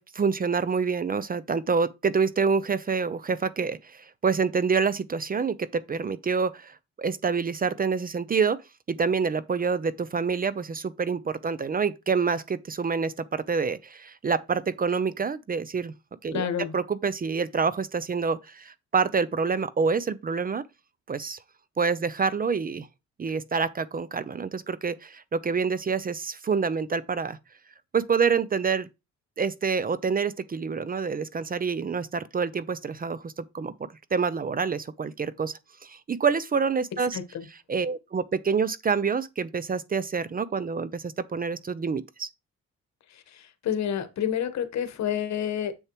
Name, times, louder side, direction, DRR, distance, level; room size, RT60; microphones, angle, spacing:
voice 1, 0.0-8.6 8.9-15.9 16.2-20.6 21.1-21.4 21.8-22.9 23.2-27.4 27.9-28.9 29.4-33.7 34.1-35.5 35.8-37.2 37.7-42.3, right 5 dB, 30° right, 0.6 m, -27 dB
voice 2, 16.3-16.7 37.1-37.5 43.1-45.7, left 9 dB, 65° left, 1.3 m, -29 dB
7.2 x 6.6 x 3.0 m
cardioid pair, 90°, 30 cm